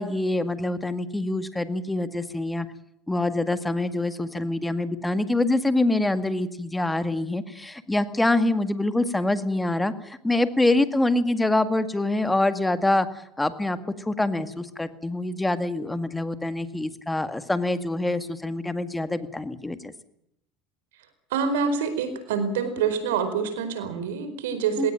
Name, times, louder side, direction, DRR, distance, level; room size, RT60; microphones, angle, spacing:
voice 1, 0.0-2.7 3.1-13.1 13.4-19.9 24.8-24.9, left 2 dB, 10° left, 11 dB, 2.0 m, -25 dB
voice 2, 21.3-24.9, right 6 dB, 90° right, 11 dB, 4.6 m, -26 dB
19.5 x 18.0 x 9.1 m, 0.77 s
supercardioid pair, 110°, 0 cm